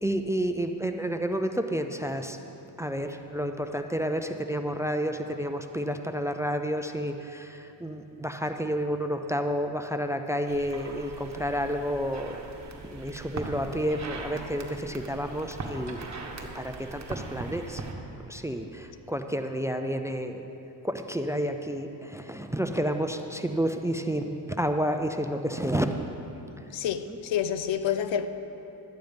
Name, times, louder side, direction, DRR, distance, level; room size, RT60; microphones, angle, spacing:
voice 1, 0.0-2.4 2.8-12.4 12.8-16.1 16.4-17.8 18.3-20.4 20.8-25.9 27.1-27.2 27.7-28.0, equal, 5° right, 0.5 m, -30 dB
sound 1, 10.4-17.9, right 3 dB, 35° right, 1.4 m, -40 dB
voice 2, 26.7-28.3, left 9 dB, 75° left, 0.7 m, -28 dB
13.0 x 9.3 x 5.2 m
cardioid pair, 95°, 46 cm